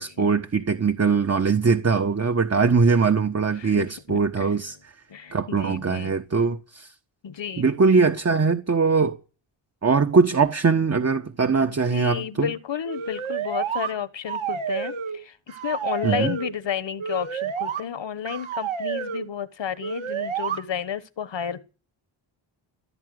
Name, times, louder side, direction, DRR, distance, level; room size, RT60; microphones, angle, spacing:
voice 1, 0.0-4.9 5.3-6.9 7.6-9.2 9.8-12.5 16.0-16.4, right 5 dB, 30° right, 1.2 m, -21 dB
voice 2, 3.6-4.5 5.1-6.1 7.2-7.7 11.6-21.6, left 8 dB, 65° left, 1.4 m, -32 dB
sound 1, 12.9-13.9 14.3-15.2 15.5-16.5 17.0-17.8 18.3-19.3 19.8-20.6, right 8 dB, 75° right, 2.0 m, -29 dB
16.5 x 8.6 x 7.8 m
cardioid pair, 70°, 48 cm